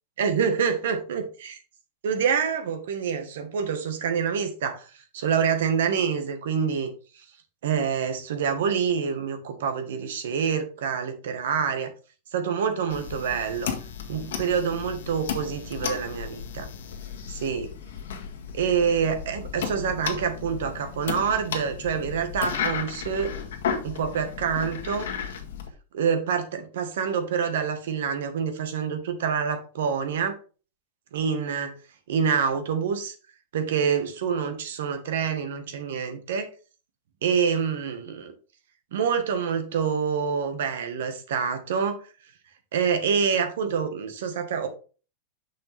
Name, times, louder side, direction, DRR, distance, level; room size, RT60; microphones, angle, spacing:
voice 1, 0.2-1.6 2.0-4.8 5.1-6.9 7.6-11.9 12.3-13.7 14.1-16.7 17.3-17.7 18.5-23.3 23.8-25.1 25.9-30.4 31.1-31.7 32.1-33.1 33.5-36.5 37.2-38.3 38.9-42.0 42.7-44.7, right 6 dB, 75° right, 1.6 m, -26 dB
sound 1, 12.9-25.7, left 7 dB, 85° left, 1.7 m, -34 dB
6.4 x 5.7 x 3.5 m
supercardioid pair, 165°, 0 cm